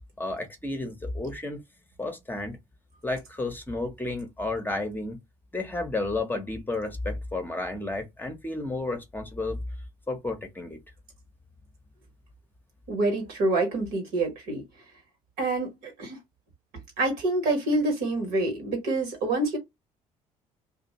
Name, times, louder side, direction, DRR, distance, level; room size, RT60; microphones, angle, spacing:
voice 1, 0.2-1.6 2.0-2.6 3.0-5.2 5.5-9.6 10.1-10.8, left 2 dB, 10° left, 0.8 m, -32 dB
voice 2, 12.9-14.6 15.4-16.2 17.0-19.6, right 2 dB, 60° right, 1.2 m, -27 dB
2.5 x 2.2 x 3.0 m
hypercardioid pair, 55°, 17 cm